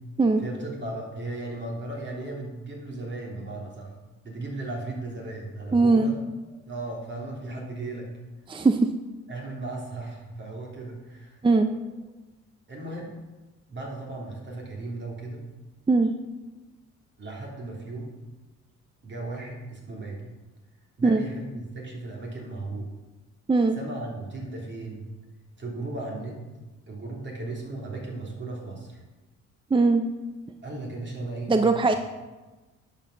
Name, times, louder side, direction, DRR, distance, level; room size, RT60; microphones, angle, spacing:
voice 1, 0.4-3.9 4.2-6.2 6.6-8.1 9.3-11.4 12.7-13.1 13.7-15.4 17.2-18.1 19.0-20.2 21.0-22.9 23.8-25.0 25.6-26.4 26.9-29.0 30.6-31.5 31.9-32.0, right 2 dB, 40° right, -2 dB, 3.2 m, -36 dB
voice 2, 5.7-6.1 8.5-8.9 11.4-11.8 15.9-16.1 21.0-21.2 23.5-23.8 29.7-30.0 31.5-31.9, right 3 dB, 15° right, 7 dB, 0.5 m, -20 dB
10.5 x 5.2 x 6.6 m, 1.2 s
cardioid pair, 90°, 30 cm